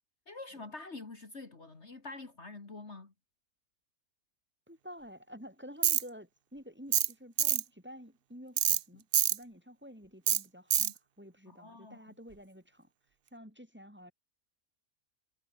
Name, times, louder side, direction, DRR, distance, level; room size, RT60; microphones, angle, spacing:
voice 1, 0.3-3.1 10.8-10.9 11.5-12.1, left 3 dB, 50° left, 2.7 m, -46 dB
voice 2, 4.7-10.9 11.2-12.9 13.3-14.1, equal, 5° right, 5.3 m, -50 dB
Tools, 5.8-6.0 6.9-7.1 7.4-7.6 8.6-8.8 9.1-9.4 10.3-10.4 10.7-10.9, right 10 dB, 55° right, 0.7 m, -26 dB
omnidirectional pair, 1.6 m